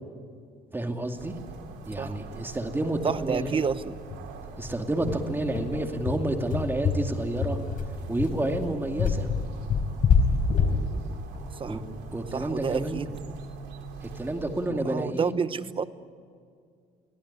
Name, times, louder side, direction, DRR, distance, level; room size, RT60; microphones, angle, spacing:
voice 1, 0.7-1.3 1.8-3.5 4.6-7.6 8.1-9.3 11.6-11.8 12.1-13.2 14.0-15.3, right 1 dB, 10° right, 2.4 m, -30 dB
sound 1, 1.2-14.7, right 5 dB, 90° right, 3.3 m, -43 dB
sound 2, 2.2-2.3 2.6-2.7 3.0-3.2 3.5-3.6 4.1-12.5, left 5 dB, 55° left, 4.4 m, -27 dB
voice 2, 3.0-4.0 5.7-5.8 11.0-11.1 11.6-11.8 12.3-13.1 14.7-15.9, right 6 dB, 30° right, 0.9 m, -29 dB
24.0 x 17.5 x 9.9 m
cardioid pair, 110°, 17 cm